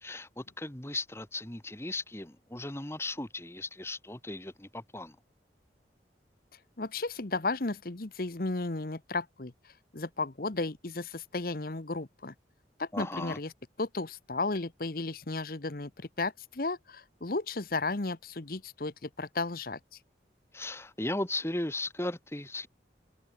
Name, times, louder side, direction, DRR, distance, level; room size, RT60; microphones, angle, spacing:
voice 1, 0.0-5.2 12.9-13.4 20.5-22.7, left 2 dB, 15° left, 1.5 m, -36 dB
voice 2, 6.8-12.3 12.8-13.5 13.8-19.8, left 3 dB, 55° left, 1.1 m, -34 dB
open air
head